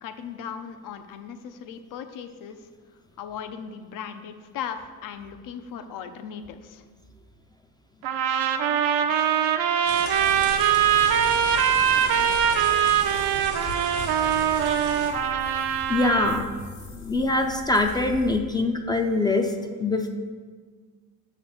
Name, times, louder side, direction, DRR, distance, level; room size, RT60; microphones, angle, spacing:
voice 1, 0.0-2.6 3.2-6.8, left 7 dB, 60° left, 8 dB, 0.7 m, -37 dB
sound 1, 8.0-16.4, right 9 dB, 75° right, 0.6 m, -22 dB
sound 2, 9.8-15.1, right 3 dB, 90° right, 1.8 m, -37 dB
sound 3, 10.1-18.4, left 3 dB, 85° left, 1.5 m, -41 dB
voice 2, 15.9-16.5 16.9-20.1, left 2 dB, 10° left, 4 dB, 0.4 m, -23 dB
6.1 x 4.1 x 5.9 m, 1.5 s
cardioid pair, 110°, 36 cm